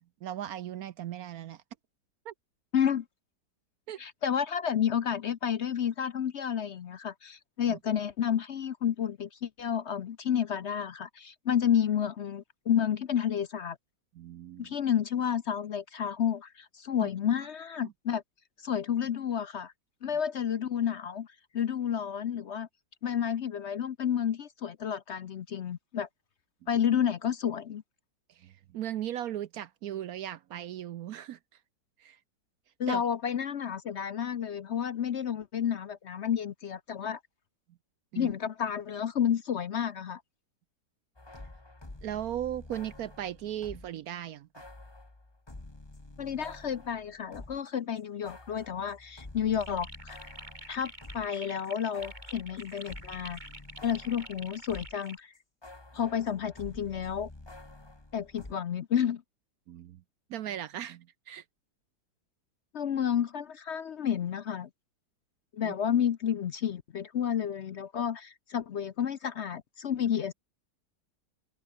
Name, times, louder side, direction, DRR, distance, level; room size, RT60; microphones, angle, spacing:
voice 1, 0.2-1.6 2.3-2.4 3.9-4.0 7.7-7.8 14.2-14.7 17.0-17.1 17.8-17.9 28.4-31.4 32.0-32.2 32.9-33.0 38.1-38.3 42.0-44.7 59.7-60.0 60.3-61.4 65.6-65.7, right 11 dB, 65° right, 1.0 m, -37 dB
voice 2, 2.7-3.0 4.0-13.8 14.6-18.2 18.6-19.7 20.0-21.3 21.5-22.7 23.0-26.1 26.7-27.8 32.8-37.2 38.1-40.2 46.2-50.3 50.7-53.4 53.8-55.3 55.9-57.3 58.1-59.2 62.7-64.7 65.5-70.3, left 8 dB, 55° left, 0.8 m, -30 dB
sound 1, 41.2-44.0 44.5-47.7 48.0-55.1 55.3-58.5, left 2 dB, 15° left, 1.8 m, -49 dB
sound 2, 49.6-55.2, right 1 dB, 25° right, 5.5 m, -47 dB
omnidirectional pair, 1.8 m